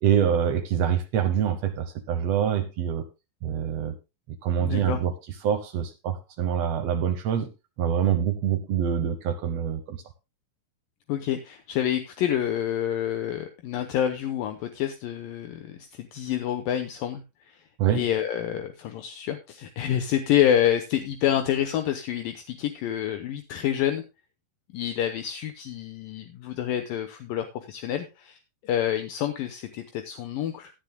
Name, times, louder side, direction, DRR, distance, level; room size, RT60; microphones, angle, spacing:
voice 1, 0.0-3.1 3.4-4.0 4.3-5.1 5.4-7.5 7.8-10.0 17.8-18.0, right 9 dB, 85° right, 7 dB, 1.4 m, -25 dB
voice 2, 4.6-5.0 11.1-17.6 17.9-24.0 24.7-28.4 28.6-30.7, left 10 dB, 75° left, 7 dB, 2.4 m, -28 dB
17.0 x 10.5 x 2.2 m, 0.27 s
omnidirectional pair, 4.3 m